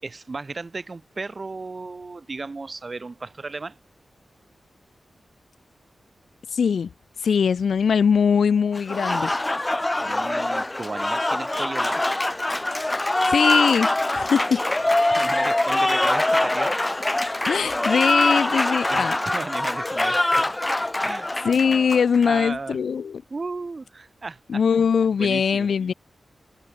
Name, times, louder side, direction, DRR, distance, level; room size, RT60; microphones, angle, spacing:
voice 1, 0.0-3.8 10.0-12.2 15.1-16.8 18.9-20.5 21.0-21.3 22.3-22.8 23.3-24.6 25.2-25.7, right 3 dB, 30° right, 6.1 m, -34 dB
voice 2, 6.5-6.9 7.2-9.3 13.3-14.6 17.5-19.2 21.4-23.2 24.5-25.9, left 6 dB, 85° left, 1.5 m, -21 dB
Applause, 8.7-22.4, left 1 dB, 15° left, 0.8 m, -23 dB
wide cardioid pair, 180°, 0 cm